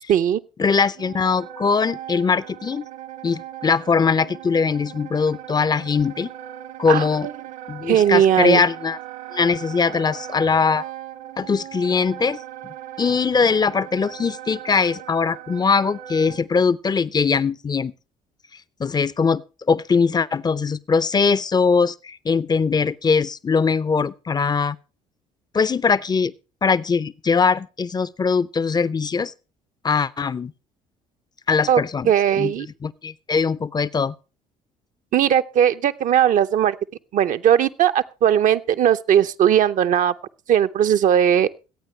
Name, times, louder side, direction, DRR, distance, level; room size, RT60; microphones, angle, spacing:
voice 1, 0.1-0.4 6.9-7.0 7.9-8.6 31.7-31.8 32.1-32.7 35.1-36.7 37.1-40.1 40.5-41.5, right 9 dB, 55° right, 0.7 m, -18 dB
voice 2, 0.6-2.9 3.2-6.3 6.8-7.3 7.7-9.0 9.3-10.8 11.4-12.4 13.0-17.9 18.8-19.4 19.7-24.8 25.5-26.3 26.6-29.3 29.8-30.5 31.5-34.1, left 5 dB, 25° left, 0.6 m, -21 dB
Wind instrument woodwind instrument, 0.9-16.4, right 11 dB, 75° right, 1.8 m, -38 dB
24.0 x 8.9 x 3.2 m
hypercardioid pair, 55°, 16 cm